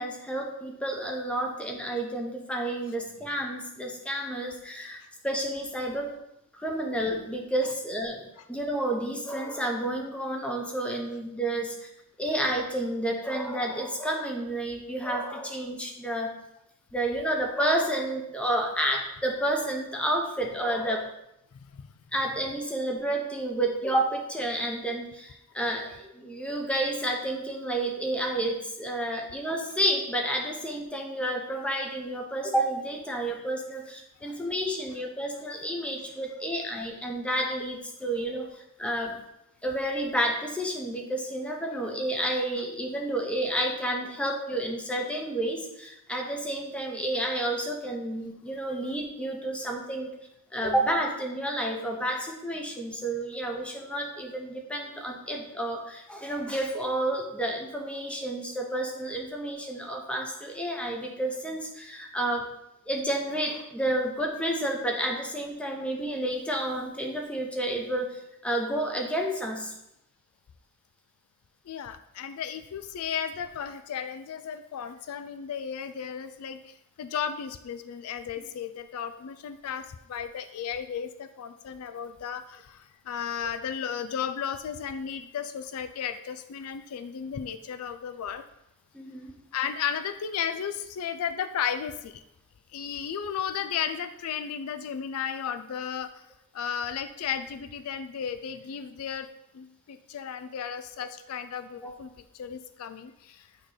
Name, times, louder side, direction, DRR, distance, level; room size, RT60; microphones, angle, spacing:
voice 1, 0.0-6.1 6.5-11.9 12.2-16.3 16.9-21.1 22.1-38.5 38.8-39.2 39.6-50.1 50.5-62.5 62.9-69.7 88.9-89.3 101.8-101.9, right 1 dB, 5° left, 0 dB, 0.8 m, -30 dB
voice 2, 71.7-88.4 89.5-92.2 92.7-96.2 96.5-99.3 99.5-103.5, left 8 dB, 70° left, 10 dB, 0.4 m, -34 dB
8.6 x 3.1 x 3.9 m, 0.82 s
head